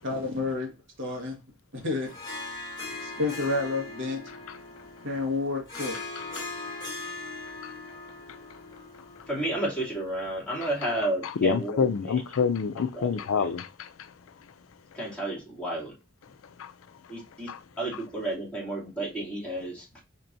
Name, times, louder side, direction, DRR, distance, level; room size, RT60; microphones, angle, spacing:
voice 1, 0.0-0.7 1.0-1.4 1.7-2.1 3.0-4.2 5.0-6.0, left 3 dB, 65° right, 1.6 m, -29 dB
Harp, 2.0-10.7, left 2 dB, 20° left, 2.8 m, -40 dB
voice 2, 4.3-4.6 6.2-6.5 7.6-7.7 10.6-10.7 11.2-14.1 16.6-16.7 17.5-17.6 17.9-18.0, left 6 dB, 85° left, 0.4 m, -28 dB
voice 3, 9.3-12.2 12.9-13.1 13.3-13.5 14.9-15.9 17.1-17.5 17.8-19.8, right 1 dB, 5° left, 2.7 m, -32 dB
4.4 x 4.4 x 2.6 m
head